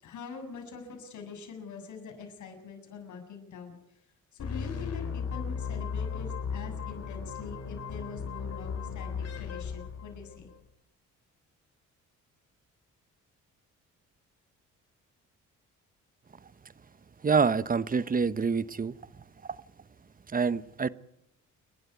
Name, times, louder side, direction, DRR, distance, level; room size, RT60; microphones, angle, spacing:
voice 1, 0.0-3.8 4.3-10.5, left 5 dB, 75° left, 4 dB, 7.7 m, -44 dB
sound 1, 4.4-10.5, left 6 dB, 55° left, 5.2 m, -36 dB
voice 2, 17.2-18.9 19.5-19.6 20.3-20.9, right 5 dB, 30° right, 15 dB, 1.1 m, -26 dB
29.5 x 12.0 x 9.6 m, 0.80 s
cardioid pair, 90°, 30 cm